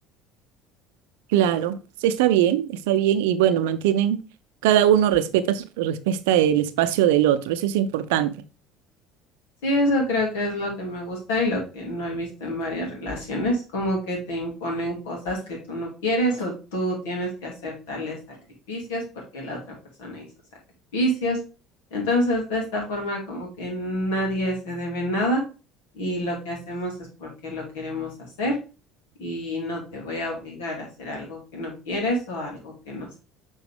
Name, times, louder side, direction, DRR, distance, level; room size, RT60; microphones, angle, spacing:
voice 1, 1.3-4.2 4.6-8.3, right 11 dB, 70° right, 0.5 m, -21 dB
voice 2, 9.6-18.4 18.7-19.6 20.0-20.3 20.9-21.4 21.9-25.4 25.9-26.9 27.2-28.5 29.2-33.2, left 1 dB, 75° left, 2.5 m, -27 dB
6.8 x 4.1 x 3.5 m
hypercardioid pair, 65°, 0 cm